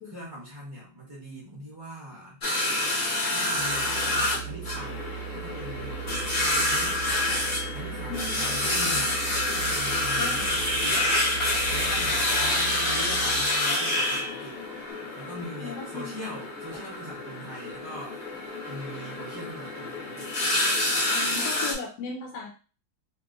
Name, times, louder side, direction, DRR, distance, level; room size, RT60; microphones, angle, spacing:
voice 1, 0.0-2.4 3.3-5.0 5.3-6.0 6.6-7.1 7.7-9.2 9.4-11.1 11.7-14.8 15.2-18.2 18.7-20.4, equal, 35° right, -6 dB, 0.4 m, -41 dB
sound 1, 2.4-21.7, left 1 dB, 40° left, 0.7 m, -28 dB
Organ, 3.4-13.7, right 11 dB, 75° right, 1.1 m, -38 dB
voice 2, 8.1-8.7 10.2-10.5 15.6-16.2 21.1-22.5, left 4 dB, 75° left, 1 dB, 1.1 m, -37 dB
2.8 x 2.8 x 2.5 m, 0.36 s
omnidirectional pair, 1.9 m